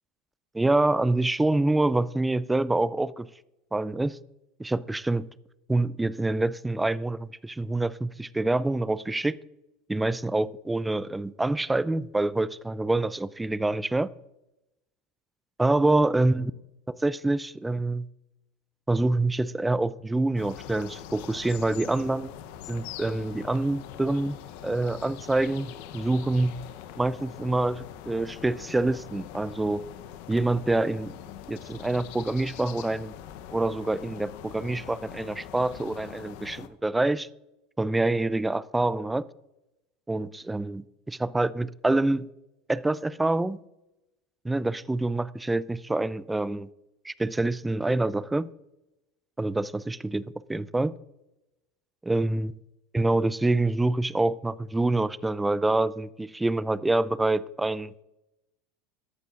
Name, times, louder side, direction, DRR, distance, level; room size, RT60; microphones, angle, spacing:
voice 1, 0.5-3.3 3.7-4.2 4.6-5.3 5.7-9.4 9.9-14.1 15.6-16.5 16.9-18.1 18.9-22.3 22.7-26.6 27.0-29.9 30.3-31.1 31.5-33.1 33.5-37.3 37.8-39.3 40.1-42.3 42.7-43.6 44.4-46.7 47.0-48.5 49.4-50.9 52.0-52.5 52.9-58.0, right 2 dB, 10° right, 0.4 m, -26 dB
sound 1, 20.4-36.7, left 11 dB, 65° left, 0.8 m, -43 dB
14.5 x 11.0 x 2.5 m
hypercardioid pair, 100°, 0 cm